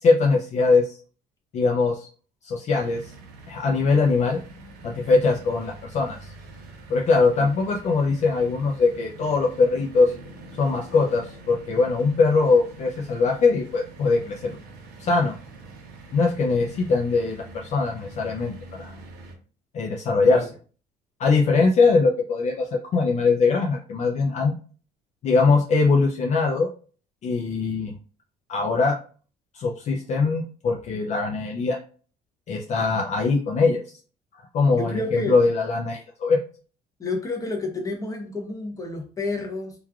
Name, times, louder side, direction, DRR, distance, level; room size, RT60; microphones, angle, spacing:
voice 1, 0.0-1.0 1.5-2.1 2.4-3.1 3.5-4.4 4.8-6.2 6.9-10.1 10.6-14.6 15.0-15.4 16.1-18.9 19.7-20.5 21.2-24.5 25.2-26.7 27.2-27.9 28.5-29.0 29.5-31.8 32.5-33.8 34.5-36.4, left 4 dB, 45° left, 1 dB, 0.4 m, -21 dB
sound 1, 2.8-19.4, right 2 dB, 90° right, 0.7 m, -44 dB
voice 2, 34.7-35.3 37.0-39.7, left 2 dB, 20° left, 2 dB, 0.7 m, -30 dB
3.1 x 2.3 x 2.3 m, 0.39 s
cardioid pair, 110°, 17 cm